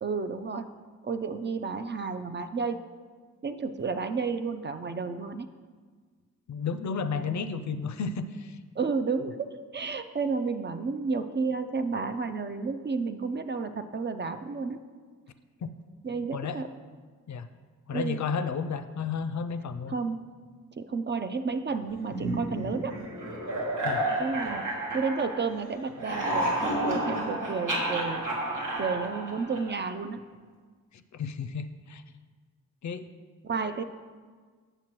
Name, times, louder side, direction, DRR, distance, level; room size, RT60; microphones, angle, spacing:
voice 1, 0.0-0.7 1.0-2.8 3.4-5.5 8.8-14.8 16.0-16.7 17.9-18.2 19.9-20.2 20.8-22.9 24.2-24.6 24.9-28.2 28.8-30.2 33.4-33.8, right 4 dB, 35° right, 9 dB, 0.4 m, -31 dB
voice 2, 6.5-8.6 15.6-15.7 16.3-16.6 17.3-17.5 17.9-19.9 23.8-24.1 30.9-32.0 32.8-33.1, left 5 dB, 60° left, 10 dB, 0.4 m, -32 dB
sound 1, 22.1-25.6 25.9-29.9, right 1 dB, 65° right, 1.4 m, -31 dB
7.3 x 6.6 x 3.0 m, 1.5 s
cardioid pair, 60°, 33 cm